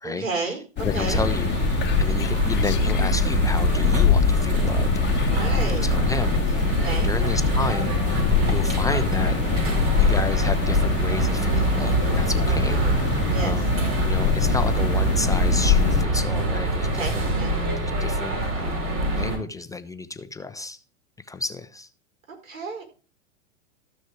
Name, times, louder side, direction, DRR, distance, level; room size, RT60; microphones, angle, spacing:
voice 1, 0.0-1.2 5.3-5.9 6.8-7.1 12.5-13.0 13.3-13.6 17.0-17.5 22.4-22.8, right 3 dB, 90° right, 5.3 m, -32 dB
sound 1, 0.8-16.0, left 7 dB, 25° left, 1.7 m, -25 dB
voice 2, 0.8-8.2 8.5-9.6 10.0-13.7 14.0-17.3 17.8-18.8 19.1-20.8 21.3-21.9, left 3 dB, 10° left, 0.5 m, -32 dB
sound 2, 1.0-19.4, right 1 dB, 35° right, 5.2 m, -24 dB
14.0 x 6.3 x 4.7 m
hypercardioid pair, 110°, 39 cm